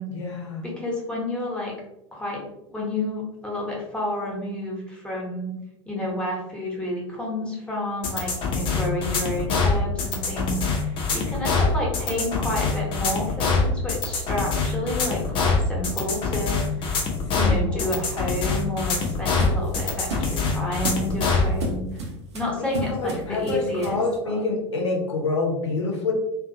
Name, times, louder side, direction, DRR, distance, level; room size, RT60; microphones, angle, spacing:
voice 1, 0.1-0.7 8.7-9.3 17.4-18.1 20.1-20.5 22.6-26.1, left 3 dB, 70° left, 0 dB, 0.7 m, -28 dB
voice 2, 0.6-1.7 2.1-2.4 2.7-5.5 5.9-16.9 17.3-22.0 22.3-24.0 24.3-24.4, left 1 dB, 5° left, -4 dB, 0.9 m, -30 dB
sound 1, 8.0-21.5, left 4 dB, 35° left, 0.6 m, -24 dB
sound 2, 18.0-24.1, right 2 dB, 65° right, 0.7 m, -34 dB
2.5 x 2.3 x 2.7 m, 0.87 s
figure-of-eight pair, 75°, 15 cm